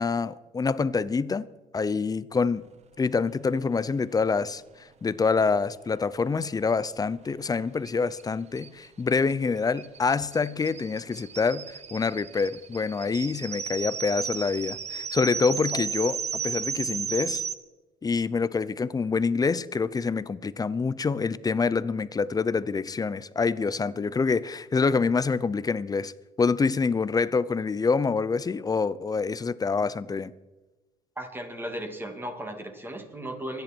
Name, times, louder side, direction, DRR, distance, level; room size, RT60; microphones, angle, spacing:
voice 1, 0.0-1.4 1.7-2.6 3.0-17.4 18.0-26.1 26.4-30.3, left 4 dB, 20° left, 0.6 m, -26 dB
sound 1, 7.9-8.0 8.2-8.3 8.6-17.5, right 7 dB, 40° right, 1.1 m, -34 dB
voice 2, 31.2-33.6, right 1 dB, 15° right, 2.7 m, -36 dB
24.5 x 10.5 x 4.5 m
cardioid pair, 110°, 17 cm